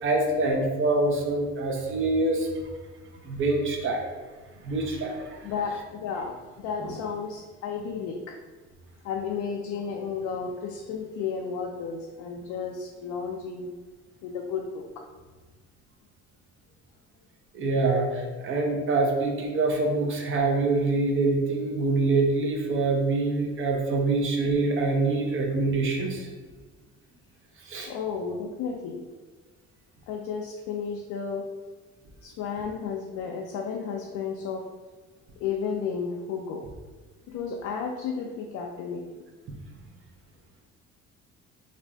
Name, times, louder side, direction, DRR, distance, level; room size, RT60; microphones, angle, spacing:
voice 1, 0.0-2.5 3.3-4.0 4.6-5.2 5.4-5.5 6.8-6.9 17.5-26.3 27.7-27.9, right 3 dB, 45° right, 1 dB, 0.7 m, -25 dB
voice 2, 5.4-8.4 9.0-13.7 14.2-15.0 27.9-29.0 30.1-31.4 32.2-34.7 35.4-36.6 37.3-39.0, left 6 dB, 75° left, 0 dB, 0.4 m, -33 dB
2.5 x 2.5 x 3.3 m, 1.4 s
cardioid pair, 95°, 29 cm